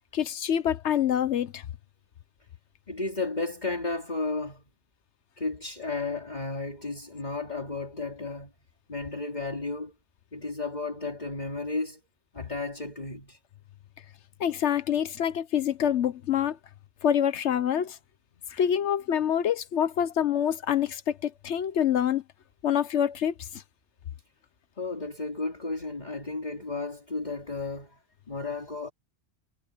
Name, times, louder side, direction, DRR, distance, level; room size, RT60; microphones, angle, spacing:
voice 1, 0.1-1.6 14.4-16.6 17.0-18.0 18.5-22.2 22.6-23.6, left 9 dB, 85° left, 1.2 m, -26 dB
voice 2, 2.9-4.6 5.4-8.5 8.9-9.9 10.3-12.0 12.3-13.4 24.8-28.9, left 3 dB, 40° left, 3.4 m, -33 dB
omnidirectional pair, 1.1 m